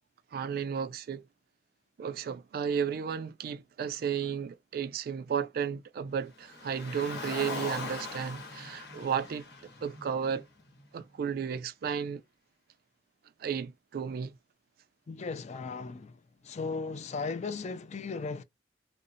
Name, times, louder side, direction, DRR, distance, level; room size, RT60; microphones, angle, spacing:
voice 1, 0.3-1.2 2.0-9.5 9.8-10.5 10.9-12.2 13.4-14.3, right 7 dB, 55° right, 0.3 m, -33 dB
Car, 6.4-10.8, left 3 dB, 65° left, 0.9 m, -40 dB
voice 2, 15.1-16.2 16.4-18.4, left 4 dB, 40° left, 0.4 m, -36 dB
2.5 x 2.0 x 2.6 m
head